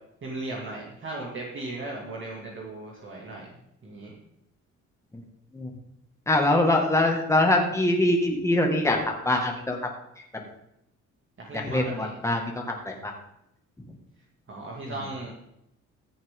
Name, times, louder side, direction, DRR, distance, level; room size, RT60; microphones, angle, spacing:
voice 1, 0.2-3.6 3.8-4.1 11.4-12.1 14.5-15.3, right 2 dB, 40° right, -3 dB, 2.6 m, -37 dB
voice 2, 6.3-9.0 9.3-9.8 11.7-13.1, left 1 dB, 10° left, 1 dB, 2.0 m, -23 dB
15.0 x 7.2 x 3.8 m, 0.80 s
cardioid pair, 90°, 30 cm